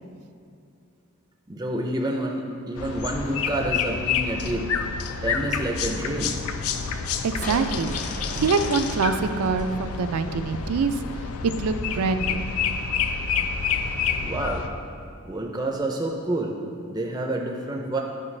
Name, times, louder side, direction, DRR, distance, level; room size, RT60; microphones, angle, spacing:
voice 1, 1.5-4.7 5.2-6.4 14.2-14.6 15.2-16.6 16.9-18.0, right 1 dB, 15° right, 1 dB, 0.4 m, -28 dB
sound 1, 2.7-14.7, left 6 dB, 75° left, 0.4 m, -28 dB
voice 2, 7.2-8.0 8.3-11.0 11.6-12.5, right 4 dB, 85° right, 10 dB, 0.4 m, -25 dB
sound 2, 7.4-10.7, left 2 dB, 35° left, 0.7 m, -39 dB
9.7 x 5.1 x 3.2 m, 2.4 s
head